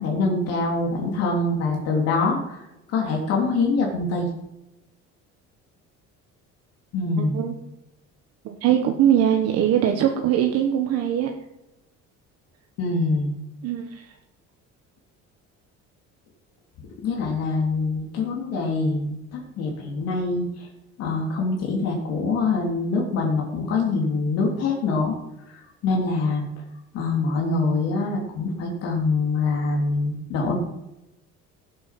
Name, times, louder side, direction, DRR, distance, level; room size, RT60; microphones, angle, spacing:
voice 1, 0.0-2.6 2.9-4.3 6.9-7.4 12.8-13.3 17.0-20.7 21.0-25.2 25.5-26.4 26.9-30.6, left 3 dB, 55° left, -1 dB, 3.1 m, -24 dB
voice 2, 7.2-7.6 8.4-11.3 13.6-14.1, right 10 dB, 55° right, 3 dB, 1.3 m, -21 dB
17.5 x 7.8 x 5.9 m, 0.92 s
cardioid pair, 175°, 30 cm